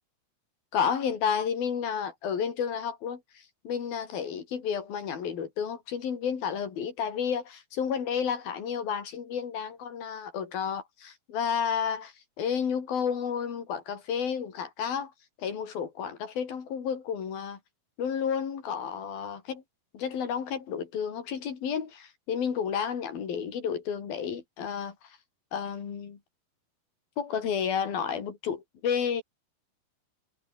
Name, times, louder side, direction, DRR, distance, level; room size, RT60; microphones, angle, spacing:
voice 1, 0.7-15.1 15.4-17.6 18.0-19.6 19.9-25.2 25.5-26.2 27.2-29.2, left 7 dB, 85° left, 5.3 m, -31 dB
omnidirectional pair, 4.1 m